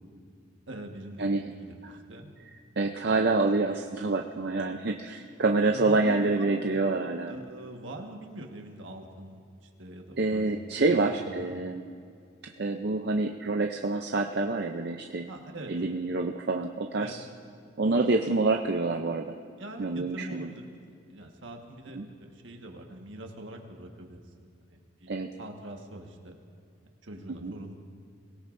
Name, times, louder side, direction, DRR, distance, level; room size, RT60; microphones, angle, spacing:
voice 1, 0.7-2.3 5.7-6.8 7.3-10.5 10.8-11.5 15.3-15.7 17.0-17.1 19.6-24.2 24.6-25.1 25.4-26.3 27.0-27.7, right 1 dB, 70° right, 2 dB, 1.5 m, -43 dB
voice 2, 1.2-1.5 1.8-2.0 2.8-7.3 10.2-11.8 12.4-15.3 15.7-17.2 17.8-19.4 19.8-20.5 21.9-22.1 25.1-25.3 27.4-27.5, right 3 dB, 55° right, 3 dB, 0.6 m, -27 dB
23.5 x 17.5 x 2.6 m, 2.3 s
head